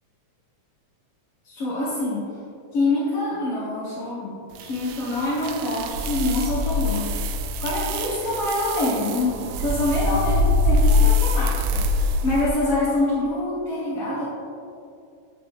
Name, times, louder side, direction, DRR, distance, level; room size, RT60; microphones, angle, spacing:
voice 1, 1.4-2.3 2.7-14.3, left 2 dB, 50° left, -10 dB, 2.4 m, -26 dB
sound 1, 4.6-12.5, left 2 dB, 85° right, 2.2 m, -23 dB
11.5 x 6.6 x 3.4 m, 2.6 s
omnidirectional pair, 3.8 m